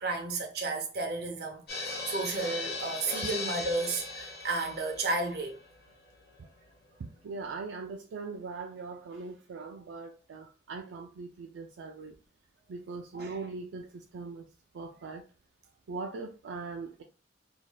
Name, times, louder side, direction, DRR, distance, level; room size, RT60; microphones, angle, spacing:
voice 1, 0.0-5.6 13.1-13.4, right 3 dB, 60° right, 0.7 m, -33 dB
sound 1, 1.7-6.8 7.0-7.1 7.4-7.5, left 3 dB, 55° left, 1.1 m, -38 dB
voice 2, 7.0-12.1 12.7-14.5 14.7-15.2 15.9-17.0, right 4 dB, 80° right, 0.4 m, -40 dB
3.1 x 2.7 x 2.2 m
head